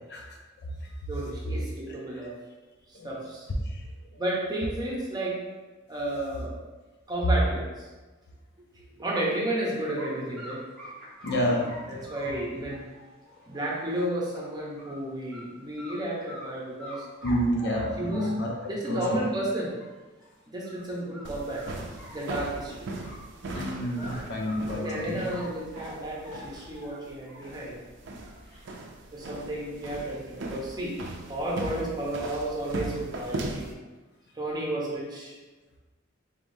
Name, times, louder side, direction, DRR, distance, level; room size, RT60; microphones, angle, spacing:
voice 1, 1.1-2.3 2.9-3.5 4.2-5.4 5.9-6.5 7.1-7.9 9.0-10.6 11.5-11.6 11.9-12.9 13.5-17.1 18.0-18.3 18.7-19.7 20.5-21.7 22.1-22.9 23.5-23.6 24.7-27.8 29.1-31.0 31.3-33.7 34.3-35.4, right 1 dB, 20° right, -4 dB, 0.8 m, -32 dB
sound 1, 10.0-10.1 10.4-14.2 14.5-15.0 15.3-15.4 15.8-16.5 16.8-18.7 19.4-19.5 19.8-19.9 20.2-20.3 20.6-20.9 21.1-22.7 23.0-25.5 25.7-27.6 28.0-28.7, left 1 dB, 5° left, 1.3 m, -45 dB
voice 2, 11.2-12.0 17.2-18.5 18.9-19.2 23.5-25.2, equal, 55° left, -1 dB, 0.6 m, -29 dB
sound 2, 21.2-33.7, right 2 dB, 60° right, 0.5 m, -39 dB
3.8 x 3.5 x 2.7 m, 1.2 s
head